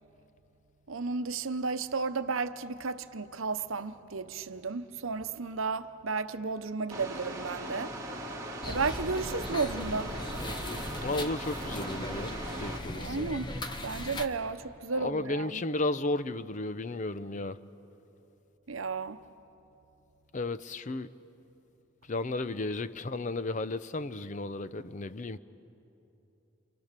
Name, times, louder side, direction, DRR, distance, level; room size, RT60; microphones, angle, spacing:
voice 1, 0.9-8.0 8.7-10.2 12.9-13.6 13.8-15.6 18.7-19.2, right 4 dB, 80° right, 0.8 m, -33 dB
sound 1, 6.9-12.8, right 1 dB, 15° right, 2.1 m, -39 dB
sound 2, 8.6-14.3, left 1 dB, 20° left, 1.0 m, -38 dB
voice 2, 11.0-13.3 14.9-17.6 20.3-21.1 22.1-25.4, left 2 dB, 35° left, 0.6 m, -34 dB
29.5 x 26.5 x 6.7 m
head